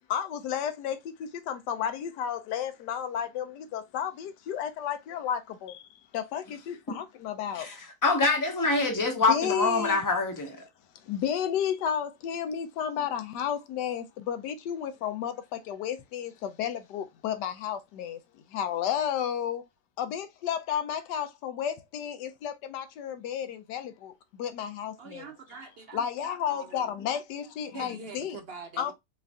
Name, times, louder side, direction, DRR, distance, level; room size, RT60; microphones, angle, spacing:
voice 1, 0.1-7.7 9.3-10.0 11.0-18.2 18.5-19.6 20.0-25.3 25.9-28.4 28.8-28.9, left 9 dB, 85° left, 1.3 m, -32 dB
voice 2, 7.5-10.6, left 3 dB, 20° left, 0.5 m, -25 dB
voice 3, 25.0-26.8 27.7-28.9, right 5 dB, 60° right, 0.6 m, -44 dB
4.6 x 2.5 x 3.4 m
omnidirectional pair, 1.8 m